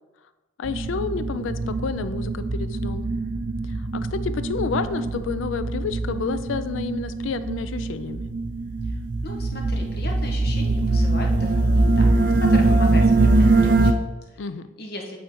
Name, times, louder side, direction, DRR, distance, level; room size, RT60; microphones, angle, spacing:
voice 1, 0.6-3.1 3.6-8.3 14.4-14.7, left 5 dB, 85° left, 12 dB, 0.4 m, -30 dB
sound 1, 0.6-13.9, right 2 dB, 45° right, 0.4 m, -22 dB
voice 2, 8.8-12.1 12.4-14.4 14.8-15.2, left 2 dB, 55° left, 2 dB, 1.1 m, -37 dB
8.5 x 3.6 x 4.5 m, 1.2 s
head